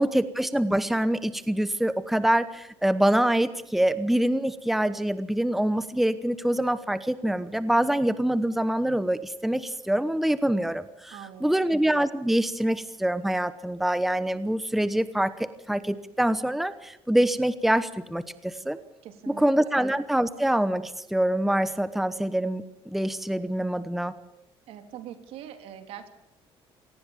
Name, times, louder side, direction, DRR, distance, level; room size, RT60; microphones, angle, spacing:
voice 1, 0.0-18.8 19.3-24.1, right 1 dB, ahead, 13 dB, 0.9 m, -25 dB
voice 2, 11.1-11.8 19.0-19.7 24.7-26.1, right 9 dB, 80° right, 7 dB, 3.1 m, -43 dB
26.0 x 18.5 x 7.1 m, 0.86 s
cardioid pair, 135°, 10 cm